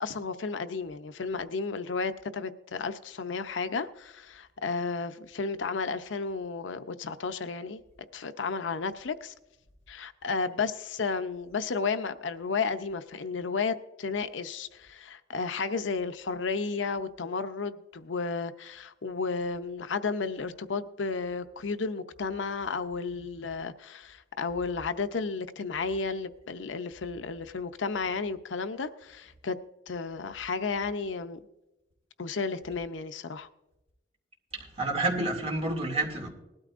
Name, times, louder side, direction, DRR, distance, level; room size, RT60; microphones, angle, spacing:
voice 1, 0.0-7.8 8.1-9.3 9.9-29.6 29.9-31.4 32.2-33.5, left 4 dB, 90° left, 0.6 m, -33 dB
voice 2, 34.8-36.3, right 2 dB, 35° right, 2.4 m, -29 dB
19.5 x 12.5 x 2.5 m
head